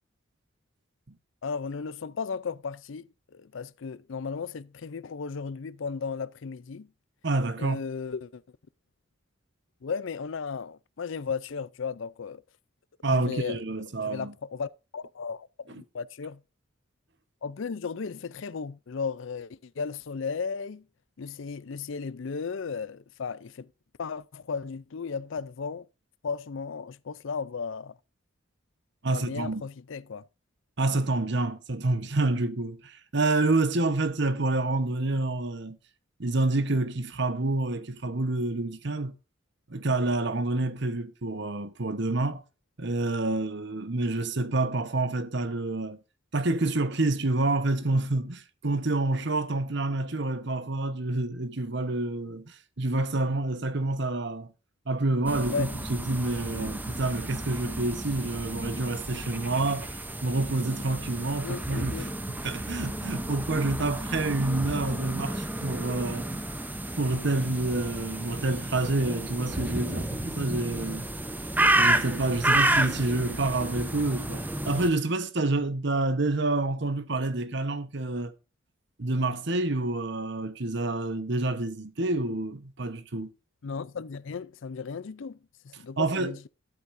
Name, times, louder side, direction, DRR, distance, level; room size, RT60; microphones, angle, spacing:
voice 1, 1.4-6.9 7.6-8.4 9.8-12.4 13.1-13.6 14.0-16.4 17.4-20.8 21.2-23.7 24.0-25.9 26.2-28.0 29.1-30.2 55.5-55.7 61.4-62.1 83.6-85.4 85.6-86.5, left 5 dB, 65° left, 0.5 m, -35 dB
voice 2, 7.2-7.8 13.0-14.3 15.7-15.8 29.0-29.6 30.8-35.8 36.2-39.1 39.7-42.4 42.8-46.0 46.3-54.5 54.9-60.0 60.2-66.4 66.9-71.1 71.8-78.3 79.0-83.3 86.0-86.3, right 2 dB, 55° right, 1.1 m, -28 dB
sound 1, 55.3-74.9, right 1 dB, 10° right, 0.8 m, -31 dB
12.5 x 8.2 x 2.6 m
head